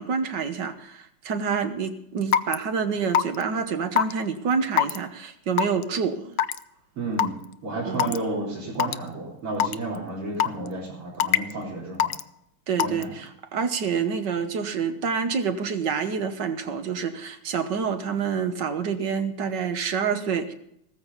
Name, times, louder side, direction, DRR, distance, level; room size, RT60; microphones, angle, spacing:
voice 1, 0.0-6.3 7.8-8.2 12.7-20.5, right 6 dB, 60° right, 9 dB, 1.6 m, -27 dB
Raindrop / Water tap faucet / Drip, 2.3-2.5 3.1-3.4 4.0-4.1 4.8-5.0 5.6-5.8 6.4-6.6 7.2-7.3 8.0-8.2 8.8-8.9 9.6-9.7 10.4-10.7 11.2-11.5 12.0-12.2 12.8-13.0, left 9 dB, 85° left, 0.8 m, -21 dB
voice 2, 7.0-7.3 7.6-12.1 12.8-13.1, right 2 dB, 85° right, -6 dB, 4.8 m, -31 dB
16.0 x 14.0 x 4.0 m, 0.77 s
omnidirectional pair, 2.4 m